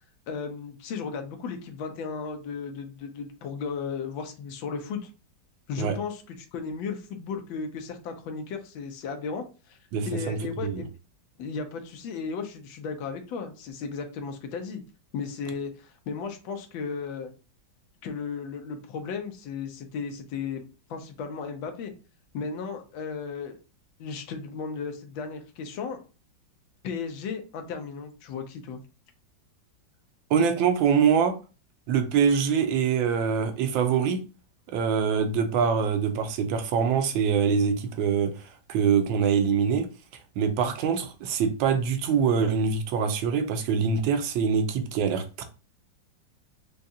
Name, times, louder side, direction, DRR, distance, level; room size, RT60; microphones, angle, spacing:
voice 1, 0.3-5.1 5.7-9.8 10.1-10.9 11.4-14.8 15.1-17.3 18.0-20.6 20.9-21.9 22.3-23.6 24.0-26.0 26.8-28.8, left 5 dB, 90° left, 1.5 m, -35 dB
voice 2, 9.9-10.4 10.6-10.8 30.3-31.3 31.9-34.2 34.7-38.3 38.7-39.9 40.4-45.4, right 6 dB, 90° right, 1.4 m, -24 dB
4.9 x 2.3 x 2.6 m
omnidirectional pair, 2.1 m